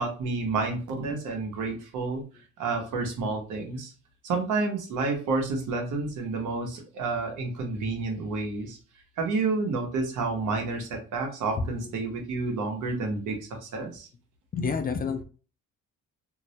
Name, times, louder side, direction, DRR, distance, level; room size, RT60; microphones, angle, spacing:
voice 1, 0.0-2.2 2.6-3.9 4.2-8.8 9.2-14.1, right 3 dB, 80° right, 2 dB, 0.8 m, -30 dB
voice 2, 14.5-15.2, left 5 dB, 30° left, 7 dB, 0.4 m, -28 dB
2.2 x 2.0 x 2.7 m, 0.36 s
cardioid pair, 90°, 30 cm